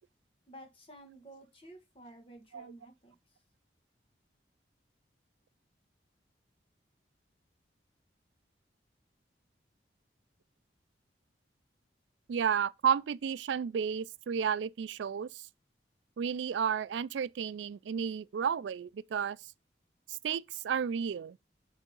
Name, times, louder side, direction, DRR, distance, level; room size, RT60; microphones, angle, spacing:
voice 1, 0.5-3.2, right 1 dB, 30° left, 1.7 m, -52 dB
voice 2, 12.3-15.4 16.2-19.4 20.2-21.4, right 7 dB, 85° right, 0.4 m, -32 dB
8.3 x 3.5 x 5.4 m
head